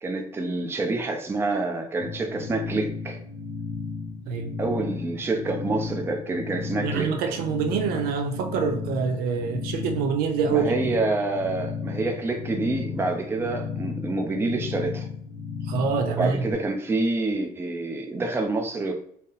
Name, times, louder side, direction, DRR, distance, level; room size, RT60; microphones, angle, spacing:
voice 1, 0.0-3.2 4.6-7.2 10.5-15.1 16.1-18.9, right 2 dB, 15° right, 0.5 m, -27 dB
sound 1, 2.0-16.5, left 5 dB, 50° right, 1.2 m, -34 dB
voice 2, 6.8-10.7 15.6-16.4, right 6 dB, 90° right, 0.6 m, -26 dB
4.1 x 2.0 x 3.8 m
cardioid pair, 155°, 15 cm